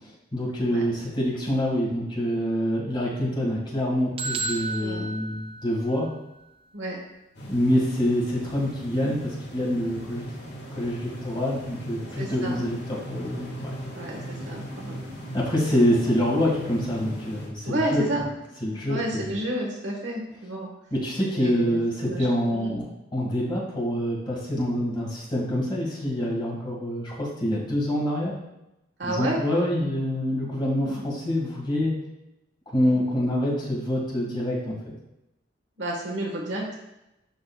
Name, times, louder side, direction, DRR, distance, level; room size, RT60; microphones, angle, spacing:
voice 1, 0.3-6.1 7.5-10.2 10.7-13.7 15.3-18.0 18.6-19.3 20.9-28.3 29.0-31.9 32.7-34.8, equal, 25° left, -4 dB, 1.9 m, -26 dB
sound 1, 4.2-6.1, right 3 dB, 30° right, 0.4 m, -33 dB
sound 2, 7.3-17.5, equal, 70° left, 1.8 m, -39 dB
voice 2, 12.2-12.6 13.9-15.0 17.6-18.2 18.9-20.7 21.3-22.3 22.5-22.8 29.0-29.4 32.8-33.0 35.8-36.7, right 1 dB, 75° right, -2 dB, 1.5 m, -31 dB
11.0 x 3.9 x 2.4 m, 0.89 s
head